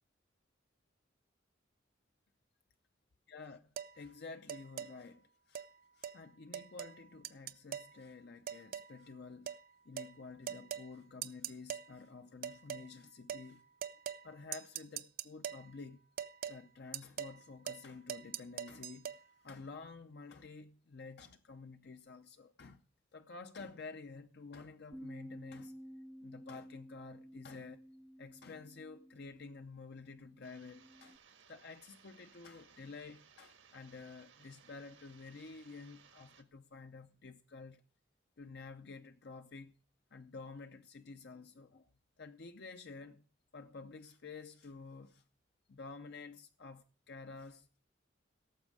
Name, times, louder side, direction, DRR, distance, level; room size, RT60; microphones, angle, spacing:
voice 1, 3.3-3.6 3.9-5.7 5.9-9.6 9.8-13.6 14.2-16.0 16.5-22.8 23.1-25.7 26.2-27.8 28.2-31.2 31.5-37.8 38.4-39.8 40.1-41.9 42.2-43.2 43.5-45.2 45.7-47.8, left 4 dB, 60° left, 0.6 m, -51 dB
sound 1, 3.8-3.9 4.5-4.9 5.5-5.7 6.0-6.2 6.5-7.0 7.2-7.9 8.5-8.9 9.5-9.6 10.0-10.1 10.5-10.9 11.2-11.9 12.4-12.9 13.3-13.5 13.8-14.3 14.5-15.7 16.2-16.6 16.9-17.4 17.7-17.8 18.1-19.2, right 9 dB, 50° right, 0.5 m, -42 dB
Bass guitar, 24.9-31.2, equal, 5° right, 0.5 m, -53 dB
sound 2, 30.4-36.4, right 7 dB, 90° right, 1.6 m, -63 dB
17.0 x 7.2 x 4.8 m
head